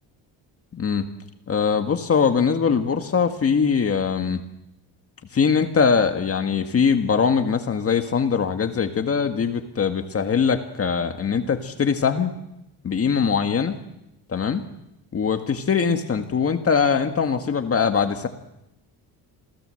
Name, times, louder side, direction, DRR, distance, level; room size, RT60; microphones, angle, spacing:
voice 1, 0.7-1.1 1.5-4.4 5.3-12.3 12.8-13.8 14.3-14.6 15.1-18.3, left 6 dB, 35° left, 7 dB, 1.8 m, -22 dB
27.0 x 18.0 x 7.8 m, 0.85 s
cardioid pair, 125°, 41 cm